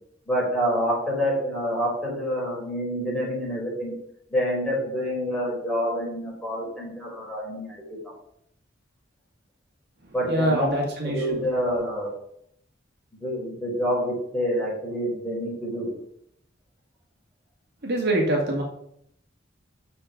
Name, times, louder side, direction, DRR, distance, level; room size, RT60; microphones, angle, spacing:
voice 1, 0.3-3.9 4.3-7.8 10.1-10.7 11.0-12.1 13.2-15.9, equal, ahead, -5 dB, 4.1 m, -27 dB
voice 2, 10.3-11.2 17.8-18.6, right 1 dB, 60° right, -1 dB, 2.0 m, -24 dB
13.0 x 4.5 x 5.1 m, 0.72 s
head